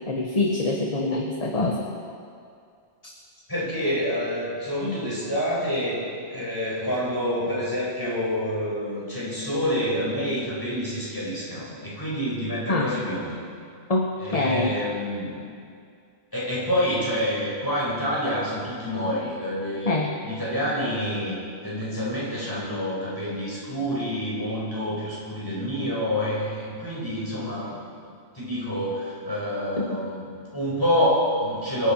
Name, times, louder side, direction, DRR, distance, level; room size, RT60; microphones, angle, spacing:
voice 1, 0.1-1.9 12.7-12.9 13.9-14.7 19.9-20.2, left 2 dB, 35° left, 0 dB, 1.2 m, -25 dB
voice 2, 3.5-6.0 6.3-13.3 14.2-15.4 16.3-20.0 20.2-21.4 21.6-27.9 28.3-31.9, equal, 20° left, -7 dB, 5.0 m, -27 dB
26.0 x 9.3 x 4.6 m, 2.3 s
omnidirectional pair, 1.1 m